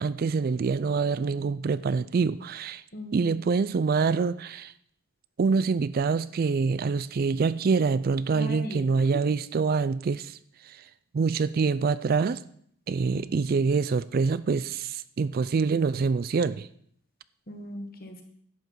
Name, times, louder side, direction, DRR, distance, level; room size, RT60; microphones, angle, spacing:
voice 1, 0.0-2.8 3.1-4.7 5.4-10.4 10.6-10.8 11.1-12.4 12.9-16.7, right 5 dB, 45° right, 16 dB, 0.3 m, -25 dB
voice 2, 2.9-3.4 8.3-8.8 13.1-13.4 17.5-18.2, right 1 dB, 45° left, 4 dB, 1.6 m, -38 dB
11.5 x 7.8 x 4.7 m, 0.64 s
head